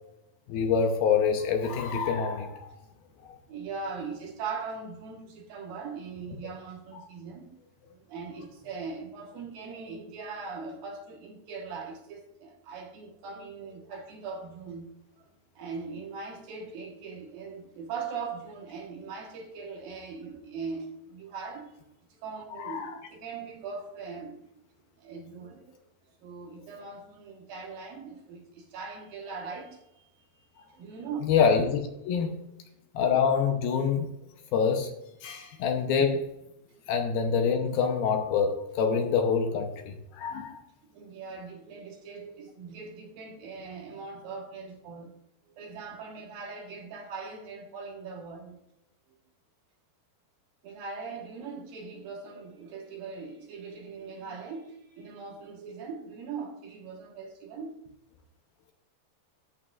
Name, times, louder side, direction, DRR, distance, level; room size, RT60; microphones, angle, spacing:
voice 1, 0.5-2.7 3.2-3.3 22.6-23.0 31.3-32.4 32.9-34.1 34.5-34.9 35.2-36.3 36.9-40.6, left 6 dB, 75° left, 2.5 m, -26 dB
voice 2, 3.5-7.5 7.9-14.9 15.2-15.3 15.6-21.8 22.1-24.4 24.8-25.8 26.1-30.2 30.7-31.2 32.2-32.4 36.6-36.7 40.8-45.1 45.5-48.6 49.1-49.2 50.6-57.8, right 5 dB, 65° right, 3.0 m, -40 dB
13.5 x 8.5 x 2.5 m
omnidirectional pair, 4.7 m